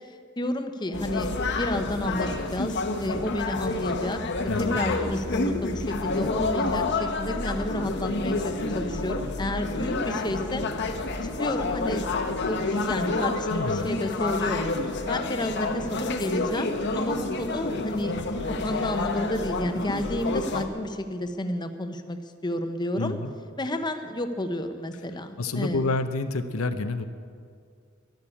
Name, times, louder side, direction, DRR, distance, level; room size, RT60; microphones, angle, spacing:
voice 1, 0.4-1.3 1.6-10.6 11.2-12.0 12.5-14.7 15.1-18.1 18.4-23.2 23.6-25.9, left 1 dB, 20° left, 7 dB, 0.8 m, -31 dB
sound 1, 0.9-20.7, left 3 dB, 55° left, 1.1 m, -29 dB
voice 2, 4.5-4.8 13.5-13.9 22.9-23.3 25.4-27.0, left 3 dB, 85° left, 9 dB, 0.8 m, -28 dB
12.5 x 12.0 x 8.5 m, 2.2 s
head